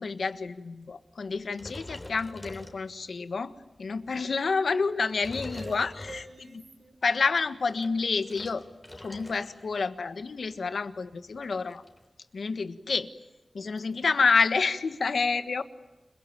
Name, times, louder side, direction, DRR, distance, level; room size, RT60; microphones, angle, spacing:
voice 1, 0.0-3.5 3.8-6.2 7.0-8.7 9.0-11.8 12.3-13.1 13.5-15.6, left 4 dB, 80° left, 11 dB, 1.5 m, -28 dB
sound 1, 1.6-3.3 3.8-4.1 4.8-6.6 7.5-9.7 10.0-10.3 10.6-10.7 10.9-12.0, left 1 dB, 25° left, 3.8 m, -44 dB
voice 2, 5.5-7.0 13.6-14.0, right 3 dB, 65° right, 7 dB, 5.3 m, -48 dB
29.5 x 22.0 x 9.0 m, 1.1 s
wide cardioid pair, 95°, 0 cm